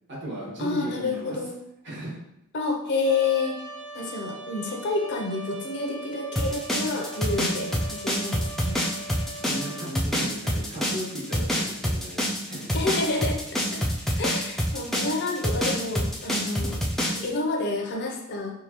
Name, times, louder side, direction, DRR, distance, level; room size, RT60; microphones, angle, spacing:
voice 1, 0.1-1.4 1.8-2.2 9.3-12.8, equal, 55° right, -6 dB, 1.4 m, -36 dB
voice 2, 0.6-1.5 2.5-3.6 3.9-9.2 12.7-13.8 14.1-16.8 17.1-18.5, left 3 dB, 55° left, 2 dB, 0.6 m, -29 dB
Trumpet, 3.0-9.9, right 2 dB, 90° right, 0.8 m, -40 dB
sound 1, 6.4-17.3, equal, ahead, 0.4 m, -27 dB
4.6 x 2.3 x 2.9 m, 0.81 s
head